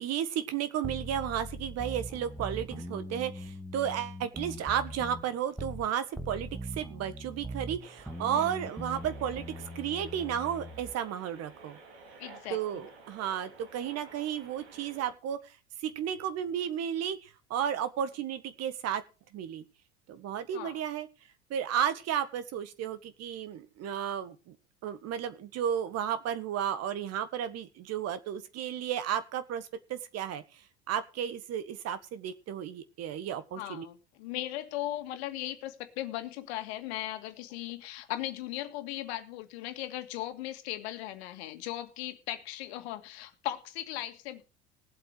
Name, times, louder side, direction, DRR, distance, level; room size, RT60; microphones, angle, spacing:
voice 1, 0.0-6.5 6.8-11.8 12.5-15.4 15.8-19.0 19.3-19.6 20.1-21.1 21.5-24.6 24.8-30.4 30.9-33.9, right 9 dB, 50° right, 13 dB, 1.6 m, -33 dB
sound 1, 0.8-5.9 6.2-10.9, equal, 5° right, 1.7 m, -41 dB
sound 2, 7.8-15.1, right 4 dB, 75° right, 4.4 m, -52 dB
voice 2, 12.2-12.9 20.5-20.8 33.6-44.4, left 14 dB, 70° left, 8 dB, 2.0 m, -38 dB
18.5 x 7.9 x 4.9 m, 0.32 s
hypercardioid pair, 80°, 33 cm